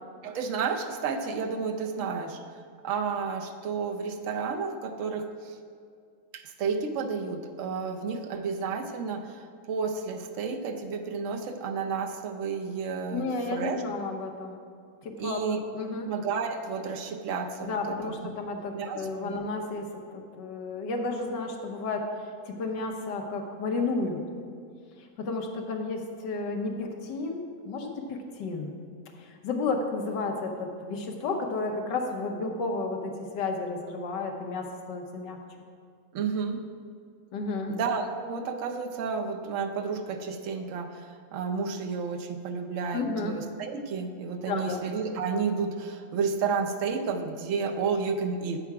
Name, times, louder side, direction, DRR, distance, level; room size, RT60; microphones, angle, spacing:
voice 1, 0.2-2.4 2.8-5.6 6.3-13.8 15.2-15.6 16.0-18.1 18.7-19.3 36.1-36.6 37.7-48.6, right 5 dB, 65° right, 5 dB, 0.8 m, -31 dB
voice 2, 13.1-14.6 15.0-15.4 15.7-16.1 17.6-24.2 25.0-28.7 29.1-35.4 37.3-37.8 42.9-43.4 44.4-44.8, left 3 dB, 70° left, 3 dB, 1.5 m, -32 dB
8.4 x 6.8 x 4.7 m, 2.2 s
omnidirectional pair, 2.0 m